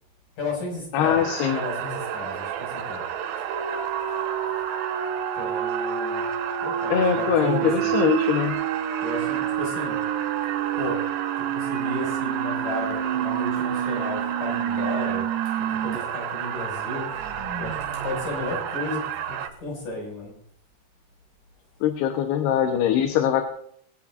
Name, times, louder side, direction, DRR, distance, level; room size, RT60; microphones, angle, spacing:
voice 1, 0.4-3.0 5.3-6.3 6.6-8.0 9.0-10.0 10.7-11.0 11.4-15.3 15.7-17.3 17.6-17.8 18.0-20.3, left 2 dB, 50° left, -1 dB, 7.7 m, -33 dB
voice 2, 0.9-1.6 6.9-8.5 21.8-23.5, left 9 dB, 75° left, 5 dB, 3.1 m, -22 dB
sound 1, 1.0-19.5, right 9 dB, 80° right, 3.1 m, -31 dB
sound 2, 3.5-16.0 16.3-16.4 16.8-19.5, right 10 dB, 60° right, 2.6 m, -29 dB
21.5 x 17.0 x 2.6 m, 0.64 s
omnidirectional pair, 4.9 m